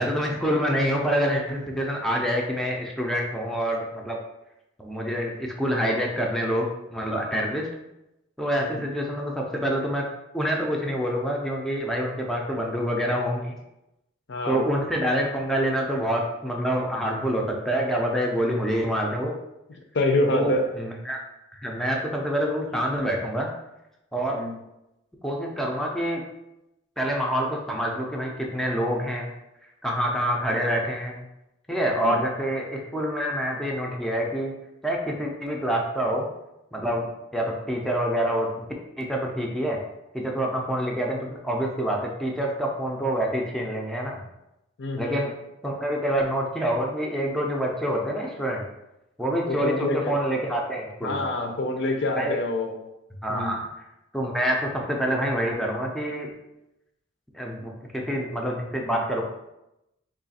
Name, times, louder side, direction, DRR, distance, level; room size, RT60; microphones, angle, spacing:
voice 1, 0.0-4.2 4.8-7.7 8.4-10.0 10.3-13.6 14.5-19.3 20.3-21.2 21.5-23.5 24.1-24.4 25.2-26.2 27.0-29.3 29.8-31.2 31.7-34.5 34.8-36.3 36.7-37.1 37.3-38.7 39.0-39.8 40.1-44.2 45.0-45.3 45.6-48.6 49.2-51.3 52.2-52.4 53.2-53.7 54.1-56.3 57.3-59.2, equal, ahead, -1 dB, 0.4 m, -26 dB
voice 2, 14.3-14.6 19.9-20.6 24.3-24.5 31.9-32.2 44.8-45.2 49.5-50.1 51.0-52.8 53.3-53.5, left 2 dB, 60° left, 4 dB, 0.5 m, -26 dB
3.2 x 2.4 x 4.0 m, 0.91 s
head